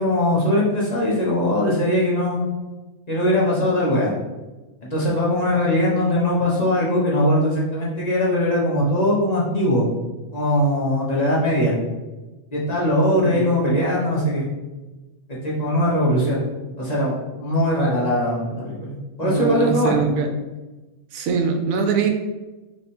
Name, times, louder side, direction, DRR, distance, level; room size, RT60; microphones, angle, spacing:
voice 1, 0.0-2.4 3.1-4.1 4.8-9.9 10.3-11.7 12.5-14.4 15.4-16.4 16.8-20.0, left 1 dB, 35° left, -5 dB, 1.0 m, -20 dB
voice 2, 19.2-20.3 21.1-22.1, right 5 dB, 80° right, 5 dB, 1.0 m, -22 dB
3.5 x 3.1 x 4.2 m, 1.1 s
omnidirectional pair, 1.4 m